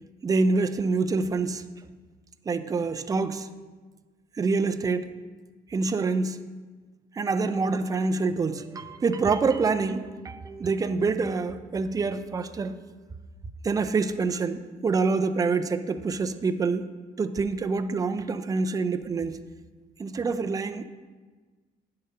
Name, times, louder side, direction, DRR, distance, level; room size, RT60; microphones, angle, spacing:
voice 1, 0.2-1.6 2.5-3.5 4.3-5.1 5.7-6.4 7.1-12.8 13.6-16.9 17.2-19.4 20.0-20.8, right 4 dB, 20° right, 9 dB, 0.4 m, -26 dB
9.3 x 3.8 x 5.5 m, 1.4 s
cardioid pair, 110°, 17 cm